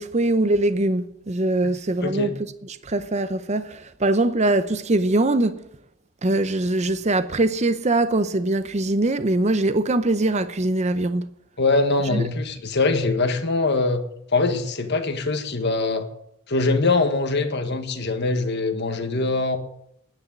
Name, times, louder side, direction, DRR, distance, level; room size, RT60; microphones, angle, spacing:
voice 1, 0.0-2.4 2.7-5.6 6.2-11.3 12.1-12.3, right 2 dB, 35° right, 0.7 m, -22 dB
voice 2, 2.0-2.3 11.6-14.0 14.3-16.1 16.5-19.6, left 3 dB, 55° left, 1.5 m, -22 dB
10.0 x 9.7 x 9.5 m
head